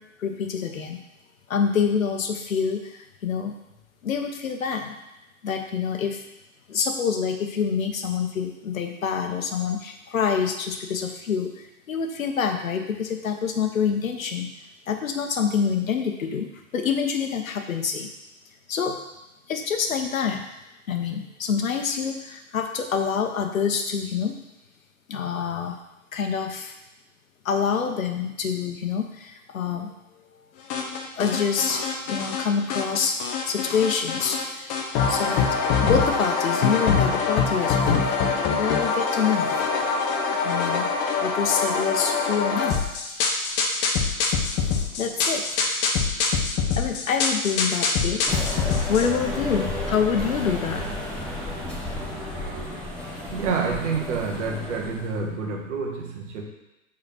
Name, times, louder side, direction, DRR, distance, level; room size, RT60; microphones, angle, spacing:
voice 1, 0.2-1.0 1.5-3.5 4.0-4.9 5.4-6.2 6.7-14.5 14.9-16.5 16.7-18.1 18.7-19.0 19.5-20.5 20.9-24.4 25.1-25.8 26.1-26.7 27.4-29.9 31.2-34.7 35.1-35.6 35.8-38.0 38.6-39.6 40.4-40.9 41.2-42.8 45.0-45.4 46.8-48.2 48.9-50.9, left 6 dB, 65° left, 4 dB, 1.1 m, -26 dB
sound 1, 30.7-32.4 32.7-34.4 34.7-49.1, left 5 dB, 25° left, 0.8 m, -24 dB
sound 2, 48.3-55.2, left 1 dB, ahead, 1.2 m, -32 dB
voice 2, 53.3-56.4, right 4 dB, 55° right, 0 dB, 1.6 m, -28 dB
5.0 x 4.2 x 5.8 m, 0.95 s
figure-of-eight pair, 110°, 43 cm